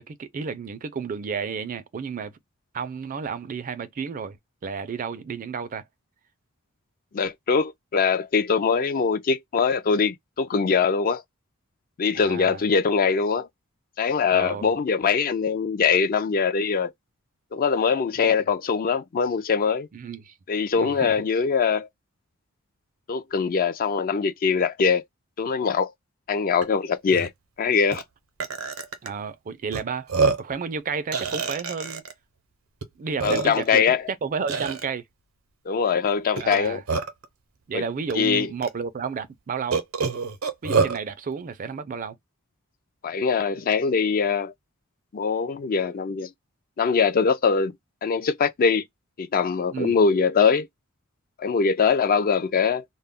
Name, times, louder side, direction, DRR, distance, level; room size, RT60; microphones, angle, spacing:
voice 1, 0.0-2.3 2.7-4.4 4.6-5.8 12.1-12.6 14.3-14.6 18.3-18.4 19.9-20.3 20.8-21.2 29.0-30.1 30.4-32.0 33.0-35.0 36.3-36.8 37.7-39.8 40.6-42.2 49.7-50.0, right 5 dB, 40° right, 0.4 m, -32 dB
voice 2, 7.1-11.2 12.0-13.5 14.0-16.9 17.5-19.9 20.5-21.9 23.1-25.0 25.4-25.9 26.3-27.3 27.6-28.0 33.2-34.0 35.7-36.8 37.7-37.8 38.1-38.5 43.0-44.5 45.1-46.3 46.8-47.7 48.0-48.8 49.2-50.7 51.4-52.8, left 5 dB, 40° left, 0.4 m, -22 dB
Burping eructation, 26.6-26.7 27.1-27.3 27.9-28.0 28.4-29.1 29.7-29.8 30.1-30.5 31.1-32.1 32.8-32.9 33.2-33.8 34.5-34.8 36.4-37.3 38.1-38.2 38.6-38.7 39.7-41.0, right 4 dB, 85° right, 0.6 m, -26 dB
2.2 x 2.0 x 3.5 m
head